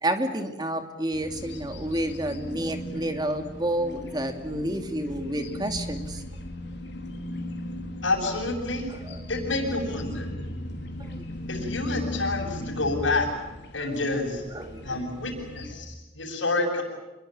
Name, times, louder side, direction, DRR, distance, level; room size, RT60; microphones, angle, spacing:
voice 1, 0.0-6.2 8.9-9.3 11.0-11.3 13.8-14.2 14.5-15.1, right 1 dB, 20° right, 7 dB, 2.6 m, -30 dB
sound 1, 1.1-15.7, left 1 dB, 65° left, 3.8 m, -37 dB
voice 2, 8.0-8.9 9.3-10.3 11.5-13.3 13.7-14.4 14.8-16.8, left 2 dB, 85° left, -4 dB, 7.3 m, -28 dB
27.0 x 22.5 x 9.0 m, 1.1 s
head